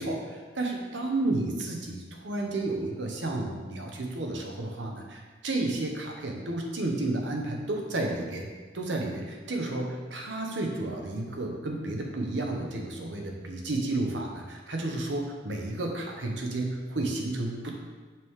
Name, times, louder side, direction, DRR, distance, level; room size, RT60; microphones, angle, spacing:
voice 1, 0.0-8.5 8.7-17.8, right 2 dB, 75° right, 1 dB, 0.9 m, -32 dB
5.9 x 4.6 x 3.6 m, 1.4 s
head